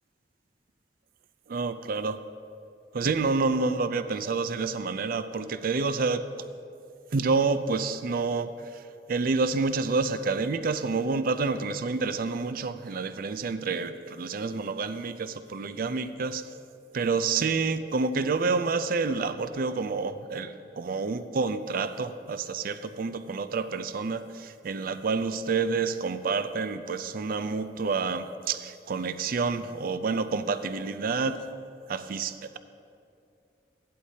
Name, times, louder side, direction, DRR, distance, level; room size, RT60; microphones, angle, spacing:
voice 1, 1.5-2.2 2.9-6.2 7.1-8.8 9.1-16.4 16.9-31.4 31.9-32.6, right 4 dB, 55° right, 11 dB, 0.5 m, -28 dB
15.0 x 11.5 x 2.8 m, 2.5 s
head